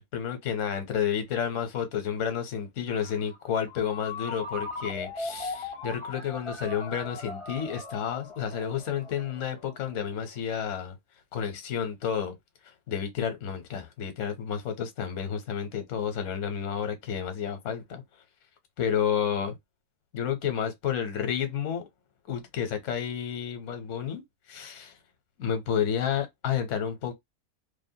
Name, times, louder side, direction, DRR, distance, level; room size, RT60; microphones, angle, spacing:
voice 1, 0.0-11.0 11.3-12.3 12.9-18.0 18.8-19.5 20.1-21.8 22.3-24.2 24.5-24.9 25.4-27.1, left 8 dB, 60° left, 1.0 m, -30 dB
Ringtone, 2.9-10.4, left 2 dB, 45° left, 0.4 m, -39 dB
2.6 x 2.1 x 2.6 m
omnidirectional pair, 1.6 m